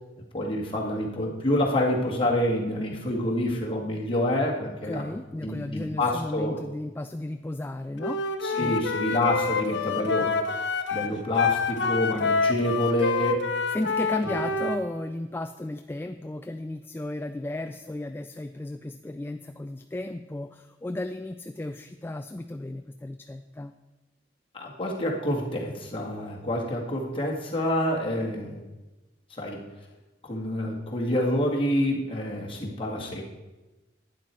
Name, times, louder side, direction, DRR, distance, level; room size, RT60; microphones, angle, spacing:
voice 1, 0.3-5.0 5.4-6.6 8.4-10.3 10.9-13.4 24.5-28.6 29.3-29.6 30.2-33.2, left 1 dB, 30° left, -2 dB, 1.9 m, -27 dB
voice 2, 4.8-8.2 8.5-8.8 13.7-23.7, left 1 dB, 10° left, 8 dB, 0.3 m, -34 dB
Wind instrument woodwind instrument, 8.0-14.8, left 4 dB, 80° left, 0.8 m, -27 dB
11.5 x 9.1 x 4.5 m, 1.1 s
head